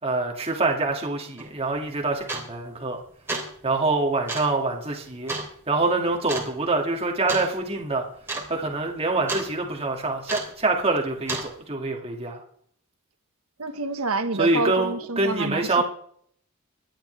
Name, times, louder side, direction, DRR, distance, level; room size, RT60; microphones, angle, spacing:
voice 1, 0.0-3.0 3.6-5.3 5.7-8.1 8.5-12.4 14.4-15.8, right 3 dB, 25° right, 1 dB, 2.3 m, -25 dB
sound 1, 1.4-1.5 2.3-2.7 3.1-3.6 4.3-4.6 5.3-5.5 6.3-6.5 7.3-7.5 7.8-7.9 8.2-8.5 8.7-9.5 10.3-10.6 11.3-11.5, right 2 dB, 10° right, 3.0 m, -31 dB
voice 2, 13.6-15.8, right 3 dB, 85° right, 9 dB, 1.5 m, -28 dB
25.0 x 10.5 x 3.4 m, 0.63 s
head